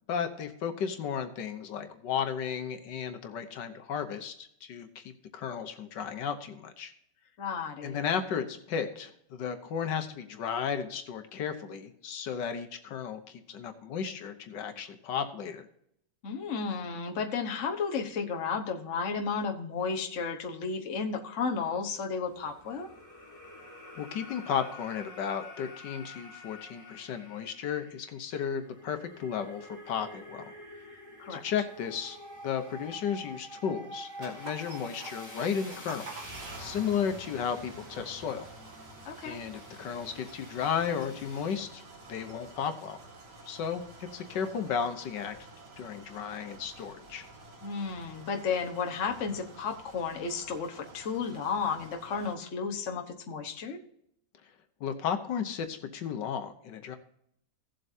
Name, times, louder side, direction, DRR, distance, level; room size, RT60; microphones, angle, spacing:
voice 1, 0.1-5.0 5.3-6.9 7.8-15.7 23.9-30.5 31.3-32.2 32.4-38.5 39.2-41.8 42.1-43.0 43.5-45.3 45.8-47.2 54.8-57.0, left 7 dB, 85° left, 7 dB, 1.7 m, -34 dB
voice 2, 7.4-8.0 16.2-22.9 31.2-31.4 39.0-39.4 47.6-53.8, left 5 dB, 50° left, 3 dB, 1.4 m, -33 dB
sound 1, 22.3-41.6, left 1 dB, 10° left, 3.0 m, -48 dB
sound 2, 34.2-52.4, right 2 dB, 70° right, 2.5 m, -49 dB
17.0 x 7.7 x 2.7 m, 0.72 s
omnidirectional pair, 1.8 m